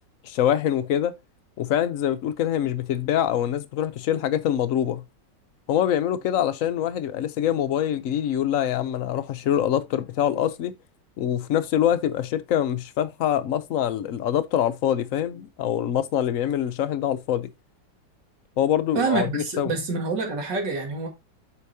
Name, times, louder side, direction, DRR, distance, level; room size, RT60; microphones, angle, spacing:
voice 1, 0.2-1.1 1.6-5.0 5.7-10.7 11.2-17.5 18.6-19.7, left 10 dB, 70° left, 0.8 m, -24 dB
voice 2, 18.9-21.1, right 4 dB, 70° right, 2.4 m, -26 dB
8.1 x 5.2 x 2.7 m
omnidirectional pair, 2.0 m